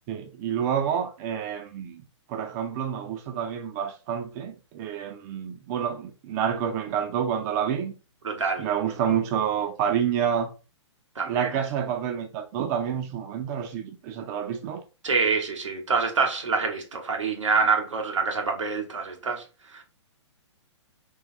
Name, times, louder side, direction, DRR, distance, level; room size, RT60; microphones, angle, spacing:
voice 1, 0.1-2.0 2.3-7.9 8.6-10.5 11.3-14.8, right 8 dB, 35° right, 0.6 m, -28 dB
voice 2, 8.2-8.7 11.2-11.5 15.0-19.4 19.7-19.8, right 5 dB, 80° right, 1.1 m, -26 dB
3.8 x 3.1 x 3.0 m
figure-of-eight pair, 125°, 16 cm